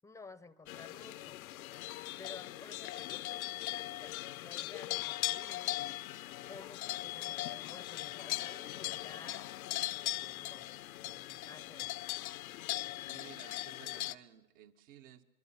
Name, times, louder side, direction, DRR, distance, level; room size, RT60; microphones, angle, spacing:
voice 1, 0.0-1.4 2.2-5.8 6.5-10.7 11.0-12.0, left 4 dB, 5° left, 18 dB, 0.9 m, -53 dB
sound 1, 0.7-14.1, left 17 dB, 65° left, 1.0 m, -39 dB
voice 2, 13.0-15.2, right 11 dB, 55° right, 6 dB, 2.2 m, -56 dB
26.5 x 23.0 x 7.7 m, 0.96 s
hypercardioid pair, 115°, 46 cm